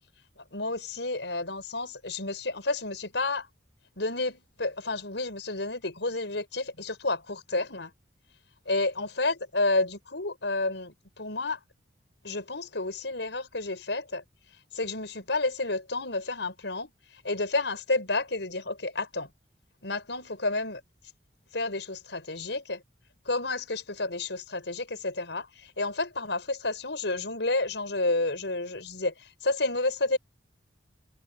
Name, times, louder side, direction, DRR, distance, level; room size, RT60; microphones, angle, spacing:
voice 1, 0.5-3.5 4.0-7.9 8.7-11.6 12.2-14.2 14.7-16.9 17.2-19.3 19.8-20.8 21.5-22.8 23.2-30.2, left 2 dB, 85° left, 5.3 m, -30 dB
head